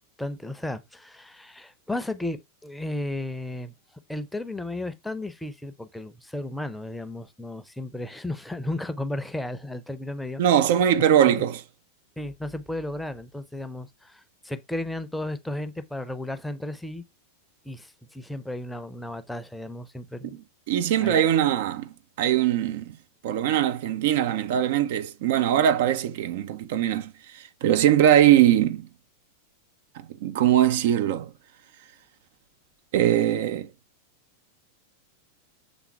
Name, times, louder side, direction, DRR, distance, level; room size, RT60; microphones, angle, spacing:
voice 1, 0.2-3.7 4.1-10.4 11.0-11.3 12.2-17.0 17.6-20.4 21.0-21.2, left 1 dB, 5° left, 0.7 m, -34 dB
voice 2, 10.4-11.6 20.7-23.0 23.2-28.9 30.2-31.3 32.9-33.7, right 11 dB, 55° right, 0.7 m, -21 dB
7.1 x 3.7 x 4.7 m
figure-of-eight pair, 90°, 0 cm